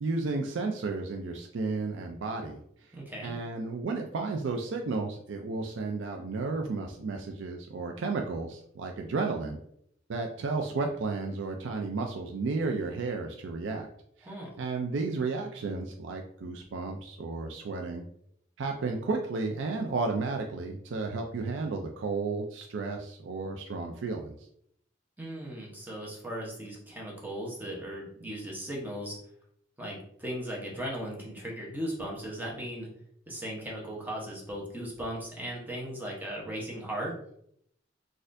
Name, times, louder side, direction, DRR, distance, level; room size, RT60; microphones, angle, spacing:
voice 1, 0.0-2.6 3.2-9.6 10.1-13.9 14.2-14.3 14.6-18.0 18.6-24.3, right 3 dB, 70° right, 3 dB, 0.4 m, -33 dB
voice 2, 2.9-3.4 14.2-14.5 25.2-29.2 29.8-32.9 33.3-37.1, equal, 10° right, -3 dB, 0.9 m, -37 dB
4.1 x 2.4 x 2.6 m, 0.70 s
head